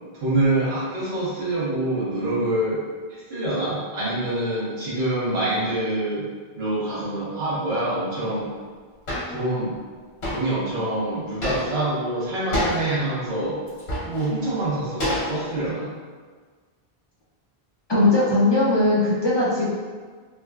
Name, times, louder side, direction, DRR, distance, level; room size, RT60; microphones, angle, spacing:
voice 1, 0.1-2.8 3.1-6.2 6.5-8.5 9.3-9.7 10.3-13.6 14.1-15.9, right 1 dB, 75° right, -11 dB, 1.3 m, -26 dB
sound 1, 9.1-9.3 10.2-10.5 11.4-11.9 12.5-12.8 13.7-14.3 15.0-15.6, left 1 dB, 90° left, 1.2 m, -27 dB
voice 2, 17.9-19.7, left 2 dB, 45° left, -7 dB, 0.3 m, -19 dB
3.5 x 2.2 x 2.3 m, 1.5 s
omnidirectional pair, 1.1 m